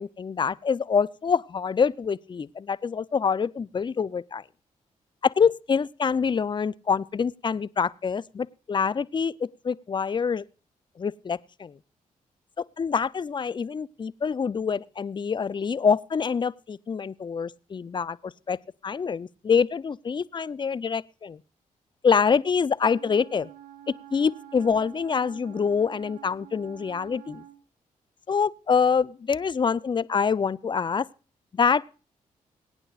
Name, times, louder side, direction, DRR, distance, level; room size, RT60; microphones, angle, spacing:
voice 1, 0.0-4.4 5.2-10.4 11.0-11.8 12.6-18.6 18.8-21.4 22.0-23.5 23.9-27.4 28.3-31.1 31.5-31.8, left 6 dB, 30° left, 0.4 m, -26 dB
Wind instrument woodwind instrument, 22.8-27.6, right 12 dB, 85° right, 0.8 m, -47 dB
23.0 x 9.0 x 2.4 m
supercardioid pair, 50°, 15 cm